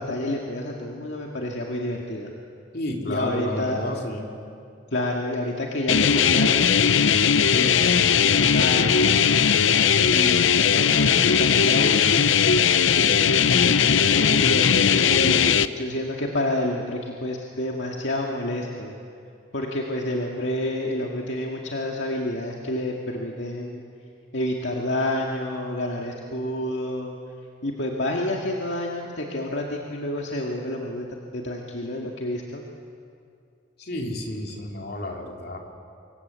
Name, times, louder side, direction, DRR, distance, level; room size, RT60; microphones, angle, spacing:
voice 1, 0.0-2.3 3.1-3.8 4.9-6.7 7.5-9.3 9.8-12.3 12.9-19.0 19.5-23.8 24.3-27.2 27.6-32.6, left 1 dB, 70° left, -1 dB, 2.1 m, -29 dB
voice 2, 2.7-4.3 33.8-35.6, left 1 dB, 55° left, 0 dB, 3.4 m, -31 dB
sound 1, 5.9-15.7, left 7 dB, 85° left, 0.7 m, -19 dB
26.5 x 22.5 x 8.2 m, 2.4 s
head